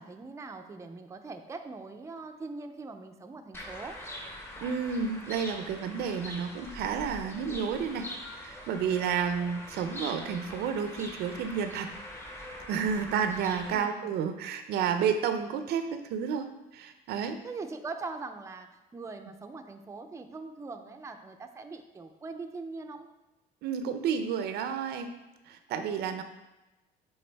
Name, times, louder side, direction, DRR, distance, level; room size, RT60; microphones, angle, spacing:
voice 1, 0.0-4.0 13.7-14.2 17.4-23.1, right 3 dB, 15° right, 5 dB, 0.5 m, -41 dB
sound 1, 3.5-13.8, left 1 dB, 15° left, 0.9 m, -43 dB
voice 2, 4.6-8.1 8.3-11.9 12.7-17.4 23.6-25.1 25.5-26.2, right 7 dB, 75° right, 8 dB, 0.5 m, -31 dB
7.8 x 3.6 x 3.4 m, 1.0 s
cardioid pair, 110°, 17 cm